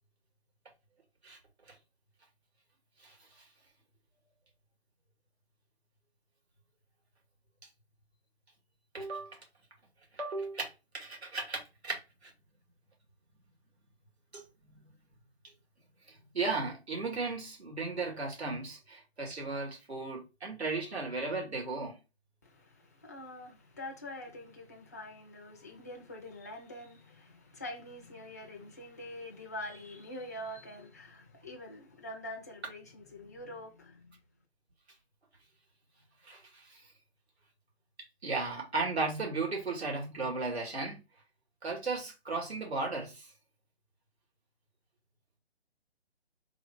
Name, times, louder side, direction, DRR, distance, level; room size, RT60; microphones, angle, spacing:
voice 1, 8.9-9.4 10.2-10.7 10.9-12.0 12.2-12.3 14.3-14.9 16.3-22.0 36.3-36.4 36.7-36.8 38.2-41.0 41.6-43.3, right 3 dB, 75° right, 2.2 m, -35 dB
voice 2, 22.4-34.2, left 1 dB, 15° left, 0.4 m, -45 dB
3.7 x 2.8 x 3.5 m
figure-of-eight pair, 150°, 33 cm